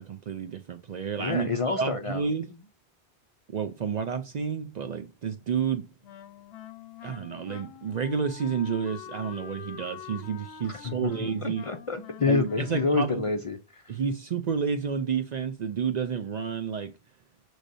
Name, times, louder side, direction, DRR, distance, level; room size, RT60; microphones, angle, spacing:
voice 1, 0.0-2.5 3.5-5.9 7.0-11.7 12.3-13.2 13.9-16.9, right 6 dB, 55° right, 0.5 m, -30 dB
voice 2, 1.2-2.2 10.8-11.1 11.4-13.8, left 4 dB, 45° left, 0.4 m, -28 dB
Wind instrument woodwind instrument, 6.0-13.4, left 9 dB, 90° left, 0.8 m, -45 dB
6.3 x 3.2 x 2.6 m
omnidirectional pair, 1.0 m